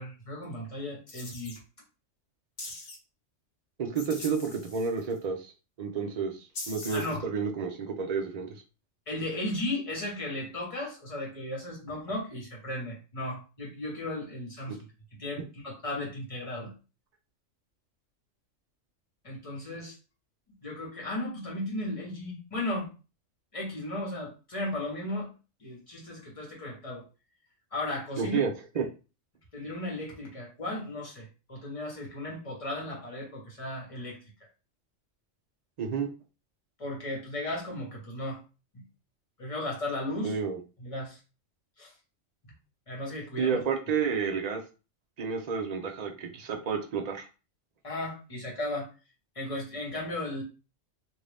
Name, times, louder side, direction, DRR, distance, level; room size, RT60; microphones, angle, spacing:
voice 1, 0.0-1.5 6.9-7.2 9.1-14.8 15.2-16.7 19.2-19.9 20.6-22.9 23.5-25.3 25.6-27.0 27.7-28.4 28.7-28.8 29.5-34.2 36.8-38.4 38.7-38.8 39.4-40.4 40.8-41.2 41.8-41.9 42.4-42.5 42.9-43.6 47.8-48.9 49.3-50.4, left 1 dB, 25° left, -3 dB, 1.2 m, -35 dB
sound 1, 1.1-1.6 2.6-3.0 4.0-5.2 6.5-7.2, left 2 dB, 60° left, 1.1 m, -42 dB
voice 2, 3.8-5.5 5.8-6.4 6.7-8.5 14.7-14.8 28.2-28.5 28.8-28.9 35.8-36.1 40.2-40.6 43.4-44.6 45.2-47.2, right 6 dB, 55° right, 3 dB, 0.4 m, -30 dB
2.7 x 2.6 x 3.3 m, 0.32 s
omnidirectional pair, 1.3 m